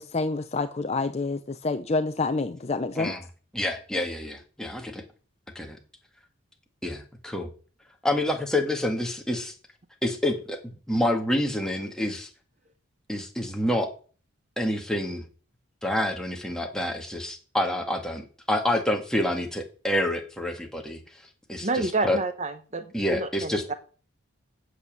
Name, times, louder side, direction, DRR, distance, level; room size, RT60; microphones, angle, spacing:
voice 1, 0.0-3.1, left 3 dB, 30° left, 0.5 m, -28 dB
voice 2, 3.5-5.0 5.6-5.8 6.8-7.5 8.0-9.5 10.0-10.6 10.9-12.3 13.1-13.9 14.6-15.2 15.8-21.0 21.5-22.2 22.9-23.6, left 1 dB, 5° left, 1.8 m, -28 dB
voice 3, 21.6-23.7, right 3 dB, 30° right, 0.8 m, -29 dB
8.3 x 7.6 x 7.4 m
head